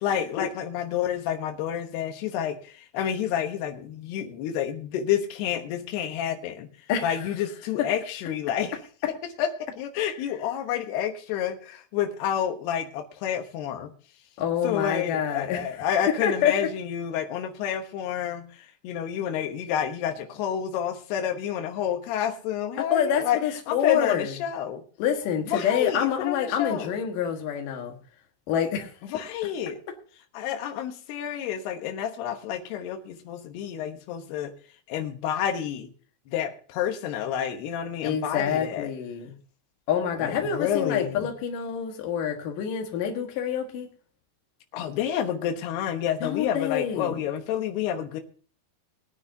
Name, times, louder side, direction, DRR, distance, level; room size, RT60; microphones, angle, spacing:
voice 1, 0.0-6.7 7.0-8.7 9.4-13.9 14.6-23.4 23.7-24.8 25.4-26.9 29.0-29.8 30.3-34.5 34.9-35.9 36.3-38.9 40.1-41.3 44.7-48.2, left 9 dB, 90° left, 6 dB, 3.2 m, -29 dB
voice 2, 6.9-7.3 14.4-15.7 16.2-16.6 22.8-24.3 25.0-28.0 28.5-28.9 38.0-39.3 39.9-43.9 46.2-47.2, left 8 dB, 65° left, 3 dB, 3.0 m, -27 dB
21.5 x 9.6 x 2.8 m, 0.40 s
omnidirectional pair, 4.6 m